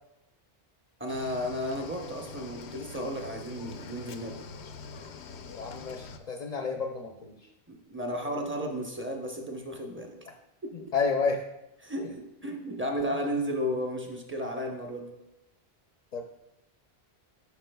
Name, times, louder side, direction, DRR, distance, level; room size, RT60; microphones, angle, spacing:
voice 1, 1.0-4.4 7.7-10.2 11.8-15.1, equal, 15° right, 2 dB, 0.8 m, -33 dB
Cricket / Waves surf, 1.1-6.2, left 5 dB, 90° left, 0.9 m, -44 dB
voice 2, 5.6-7.4 10.7-11.4 12.0-12.1 12.5-12.6 16.1-16.2, left 4 dB, 50° left, 3 dB, 0.6 m, -31 dB
11.5 x 6.0 x 2.3 m, 0.92 s
omnidirectional pair, 1.1 m